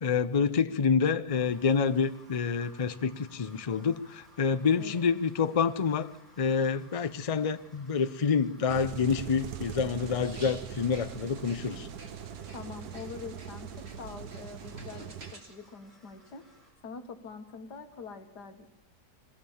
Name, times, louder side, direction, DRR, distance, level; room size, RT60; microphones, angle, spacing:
voice 1, 0.0-6.1 6.4-11.9, left 6 dB, 45° left, 12 dB, 0.4 m, -27 dB
sound 1, 1.3-16.7, equal, ahead, 7.0 m, -60 dB
voice 2, 4.8-5.1 12.5-16.4 16.8-18.7, left 5 dB, 90° left, 5 dB, 2.2 m, -44 dB
sound 2, 8.7-15.3, right 10 dB, 75° right, 1.5 m, -42 dB
sound 3, 10.1-15.5, right 3 dB, 40° right, 2.4 m, -50 dB
22.5 x 16.5 x 7.1 m, 0.90 s
omnidirectional pair, 1.7 m